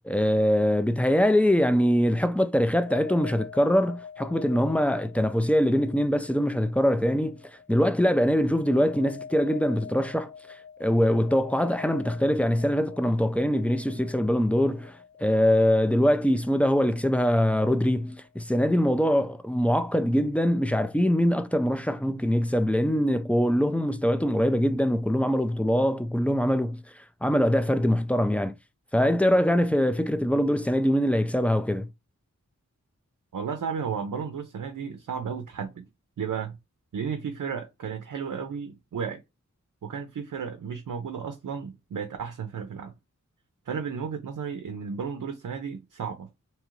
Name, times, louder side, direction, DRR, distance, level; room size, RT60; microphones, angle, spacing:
voice 1, 0.0-7.4 7.7-10.3 10.8-26.8 27.2-28.6 28.9-31.9, equal, 5° left, 0.3 m, -23 dB
sound 1, 2.8-18.4, left 7 dB, 75° left, 0.7 m, -45 dB
voice 2, 33.3-35.9 36.2-36.6 36.9-39.2 39.8-42.9 43.7-46.3, right 6 dB, 80° right, 0.5 m, -33 dB
2.8 x 2.4 x 3.0 m
wide cardioid pair, 50°, 31 cm